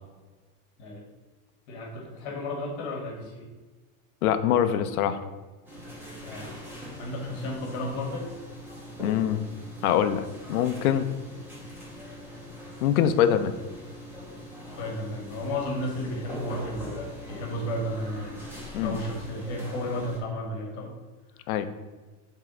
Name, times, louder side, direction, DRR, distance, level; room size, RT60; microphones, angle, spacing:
voice 1, 1.7-3.5 6.2-6.5 7.0-8.3 14.7-18.4 18.8-20.9 21.3-21.6, left 1 dB, 50° left, 1 dB, 1.5 m, -33 dB
voice 2, 4.2-5.2 9.0-9.4 9.8-11.1 12.8-13.5 18.7-19.0 21.5-21.7, left 9 dB, 75° left, 10 dB, 0.7 m, -24 dB
sound 1, 5.6-20.2, left 1 dB, 5° right, 1.0 m, -42 dB
7.6 x 3.7 x 3.9 m, 1.3 s
supercardioid pair, 165°, 44 cm